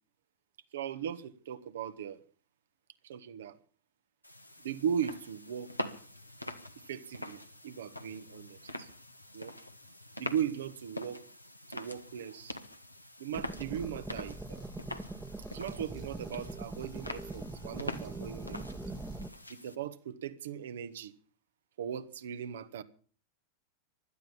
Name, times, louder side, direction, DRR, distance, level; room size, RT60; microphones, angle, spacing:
voice 1, 0.7-2.2 3.0-3.6 4.6-5.7 6.9-8.9 9.3-9.5 10.2-11.2 11.7-12.6 13.2-14.6 15.5-18.8 19.5-21.1 21.8-22.8, right 8 dB, 60° right, 1.3 m, -38 dB
sound 1, 4.2-19.8, left 1 dB, 90° left, 1.3 m, -44 dB
sound 2, 13.3-19.3, right 2 dB, 10° right, 1.2 m, -42 dB
17.0 x 12.0 x 7.0 m
figure-of-eight pair, 90°, 0 cm